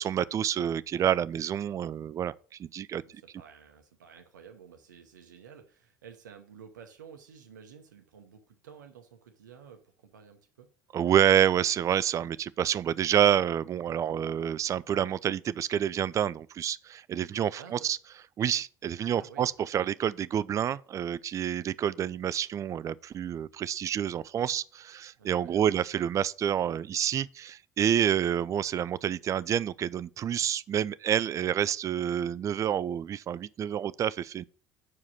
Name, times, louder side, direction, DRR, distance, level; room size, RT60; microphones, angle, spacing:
voice 1, 0.0-3.0 10.9-18.0 18.4-34.4, right 9 dB, 30° right, 0.3 m, -28 dB
voice 2, 3.0-10.7 17.6-17.9 19.1-19.5 25.2-25.7, right 7 dB, 75° right, 0.8 m, -51 dB
5.8 x 4.8 x 6.3 m
figure-of-eight pair, 60°, 10 cm